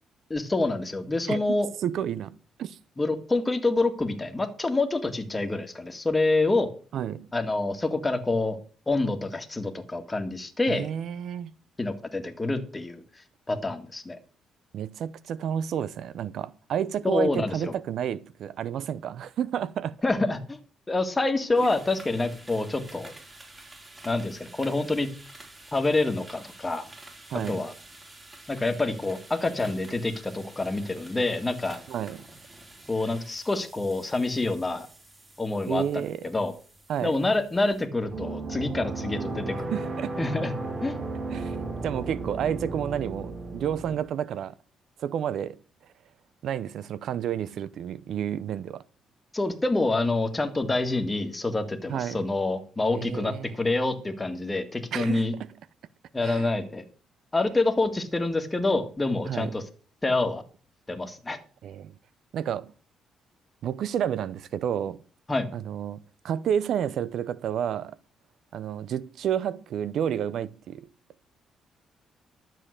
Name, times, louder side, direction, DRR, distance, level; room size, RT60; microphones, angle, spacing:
voice 1, 0.3-1.7 3.0-6.7 7.3-8.6 8.9-10.9 11.8-13.0 13.5-14.2 17.0-17.7 20.0-20.6 20.9-23.1 24.1-25.1 25.7-26.9 27.5-27.7 28.5-31.8 32.9-34.9 35.4-36.5 37.0-39.7 40.2-40.5 40.8-41.0 49.3-55.3 56.1-56.8 57.3-59.6 60.0-60.4 60.9-61.4 65.3-65.5, left 2 dB, 20° left, 1.9 m, -27 dB
voice 2, 1.8-2.8 6.9-7.3 10.7-11.5 14.7-19.9 21.6-21.7 27.3-27.6 31.9-32.3 35.7-36.3 36.9-37.2 39.7-40.2 41.3-41.6 41.8-44.5 45.0-45.6 46.4-48.8 51.9-52.2 52.9-53.5 54.9-55.3 56.2-56.5 59.3-59.6 61.6-61.9 62.3-62.7 63.6-65.0 65.5-68.0 68.5-70.9, right 9 dB, 70° right, 0.6 m, -30 dB
sound 1, 21.5-37.9, right 2 dB, 25° right, 4.2 m, -49 dB
sound 2, 38.0-44.0, right 3 dB, 40° right, 3.4 m, -34 dB
12.0 x 7.6 x 6.6 m
cardioid pair, 90°, 0 cm